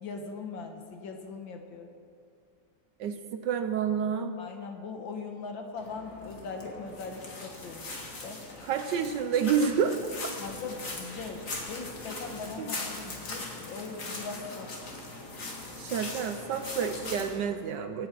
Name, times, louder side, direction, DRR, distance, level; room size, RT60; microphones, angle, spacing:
voice 1, 0.0-1.9 4.4-8.4 10.4-14.7, left 4 dB, 70° left, 4 dB, 2.0 m, -40 dB
voice 2, 3.0-4.4 8.6-10.1 12.6-12.7 15.8-18.1, right 7 dB, 70° right, 8 dB, 1.2 m, -29 dB
sound 1, 5.8-17.4, left 2 dB, 40° left, 2.2 m, -40 dB
25.0 x 8.7 x 4.5 m, 2.3 s
omnidirectional pair, 2.2 m